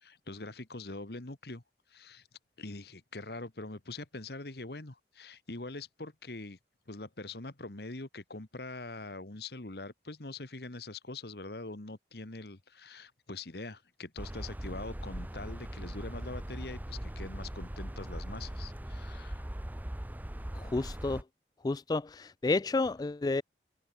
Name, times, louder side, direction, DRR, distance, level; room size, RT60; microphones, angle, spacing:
voice 1, 0.0-1.6 1.9-2.3 2.6-6.6 6.9-19.5, left 2 dB, 65° left, 1.6 m, -43 dB
sound 1, 14.2-21.2, right 1 dB, 10° right, 0.6 m, -40 dB
voice 2, 20.5-21.2 21.6-23.4, left 3 dB, 20° left, 0.3 m, -31 dB
head